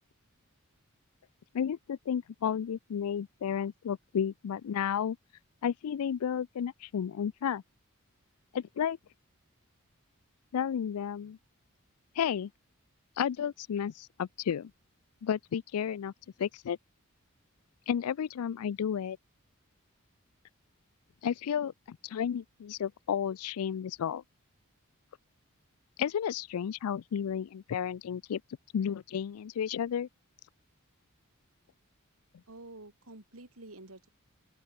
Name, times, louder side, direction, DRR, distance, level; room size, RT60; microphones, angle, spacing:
voice 1, 1.5-5.2 5.6-7.6 8.5-9.0 10.5-11.4 12.2-12.5 13.2-14.7 15.2-16.1 16.4-16.8 17.9-19.2 21.2-24.2 26.0-28.4 28.7-30.1, left 8 dB, 80° left, 0.4 m, -32 dB
voice 2, 32.5-34.1, right 2 dB, 70° right, 3.9 m, -49 dB
open air
head